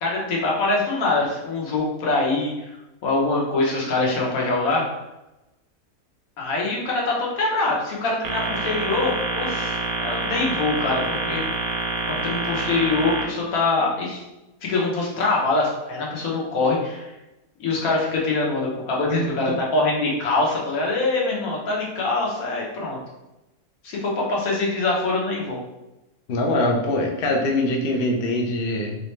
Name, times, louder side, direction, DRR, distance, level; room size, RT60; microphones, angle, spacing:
voice 1, 0.0-2.8 3.0-4.9 6.4-11.4 12.1-14.2 14.6-17.1 17.6-23.0 23.8-25.6, left 3 dB, 75° left, -3 dB, 1.4 m, -24 dB
sound 1, 8.2-13.2, right 3 dB, 85° right, 1.1 m, -27 dB
voice 2, 26.3-29.0, left 1 dB, 55° left, 1 dB, 0.6 m, -23 dB
3.6 x 3.1 x 3.1 m, 0.96 s
omnidirectional pair, 1.5 m